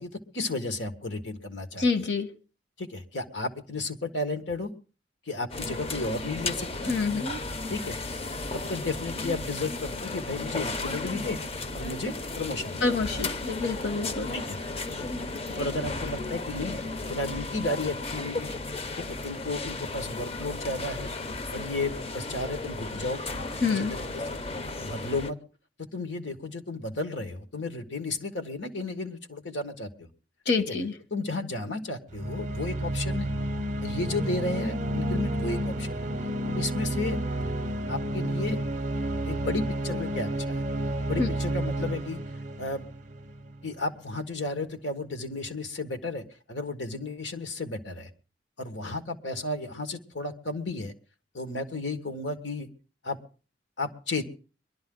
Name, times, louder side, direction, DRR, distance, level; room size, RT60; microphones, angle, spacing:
voice 1, 0.0-1.8 2.8-4.7 5.3-6.9 7.7-8.0 8.7-11.4 11.7-12.9 14.3-14.6 15.6-16.8 17.1-18.5 18.9-21.1 21.5-23.2 23.7-24.4 24.8-25.4 25.9-30.1 30.7-30.8 31.1-33.3 33.8-36.1 36.5-37.5 37.9-38.6 39.2-40.6 41.1-42.2 42.6-42.8 43.6-46.2 46.5-48.1 48.6-50.9 51.3-52.7 53.0-53.2 53.8-54.2, left 2 dB, 90° left, 7 dB, 1.7 m, -33 dB
voice 2, 1.8-2.3 6.9-7.4 12.8-14.3 23.6-23.9 30.5-30.9 41.2-41.3, left 4 dB, 70° left, 8 dB, 1.4 m, -27 dB
sound 1, 5.5-25.3, left 2 dB, 35° left, 0.6 m, -34 dB
sound 2, 32.1-43.6, right 1 dB, 45° right, 0.6 m, -30 dB
22.0 x 12.0 x 3.9 m, 0.37 s
head